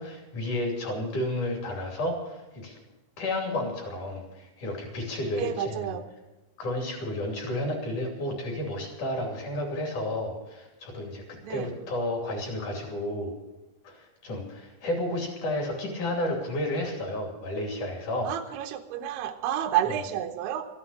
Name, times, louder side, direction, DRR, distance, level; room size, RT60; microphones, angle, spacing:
voice 1, 0.0-2.8 3.2-5.9 6.6-11.2 11.5-13.3 13.8-18.3, left 1 dB, 45° left, 1 dB, 3.8 m, -31 dB
voice 2, 5.4-6.0 11.4-11.7 18.2-20.7, right 10 dB, 75° right, 4 dB, 2.7 m, -30 dB
14.0 x 9.6 x 8.6 m, 1.0 s
omnidirectional pair, 5.4 m